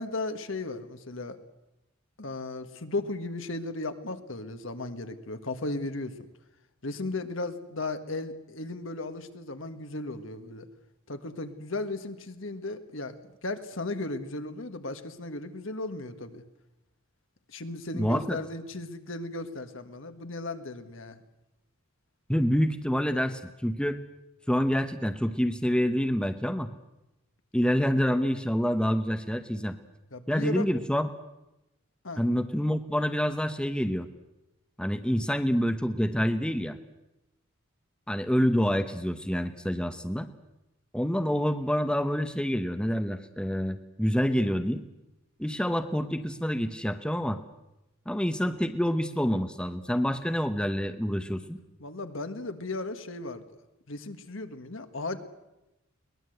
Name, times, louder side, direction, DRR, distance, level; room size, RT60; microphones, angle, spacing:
voice 1, 0.0-1.4 2.2-6.2 6.8-10.7 11.1-13.1 13.4-16.4 17.5-21.2 30.1-30.7 32.0-32.2 51.8-53.4 53.9-55.3, left 2 dB, 70° left, 8 dB, 1.7 m, -35 dB
voice 2, 17.9-18.4 22.3-24.0 24.5-26.7 27.5-29.8 30.3-31.1 32.2-34.1 34.8-36.8 38.1-40.3 40.9-44.8 45.4-47.4 48.1-51.6, equal, 5° left, 8 dB, 1.0 m, -27 dB
22.5 x 19.5 x 8.0 m, 0.94 s
head